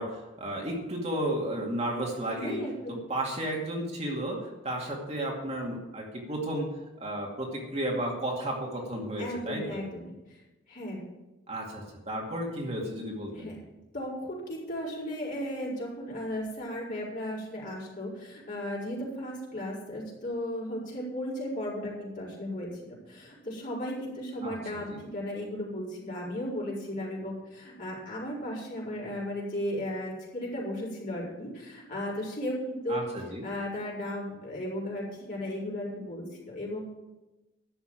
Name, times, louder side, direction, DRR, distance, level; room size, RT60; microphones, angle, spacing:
voice 1, 0.0-2.6 2.9-6.7 7.0-9.8 11.5-13.5 24.4-24.6 24.9-25.0 32.9-33.5, right 1 dB, 35° right, -1 dB, 2.3 m, -33 dB
voice 2, 2.4-2.9 9.2-10.0 10.3-10.4 10.7-11.0 13.3-13.6 13.9-33.0 33.4-36.8, left 1 dB, 45° left, -5 dB, 5.1 m, -35 dB
11.5 x 7.2 x 8.9 m, 1.0 s
head